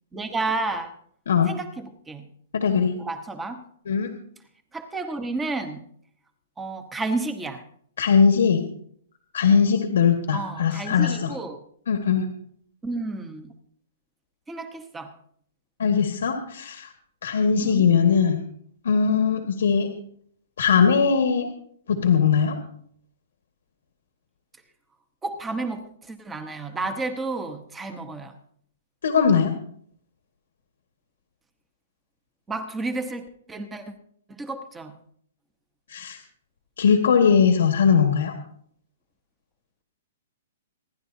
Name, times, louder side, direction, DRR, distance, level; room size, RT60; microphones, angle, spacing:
voice 1, 0.1-0.9 1.5-2.3 2.9-3.6 4.7-5.8 6.6-7.6 10.3-11.6 12.8-13.5 14.5-15.1 17.6-17.9 25.2-28.3 32.5-33.8 34.4-34.9, right 3 dB, 5° right, 8 dB, 1.0 m, -31 dB
voice 2, 2.5-2.9 3.9-4.1 8.0-8.6 9.3-11.3 11.9-12.2 15.8-16.9 17.2-18.4 18.8-19.9 20.6-21.5 21.9-22.6 29.0-29.5 35.9-36.2 36.8-38.3, left 6 dB, 85° left, 4 dB, 1.6 m, -20 dB
26.5 x 11.0 x 2.7 m, 0.63 s
hypercardioid pair, 175°, 0 cm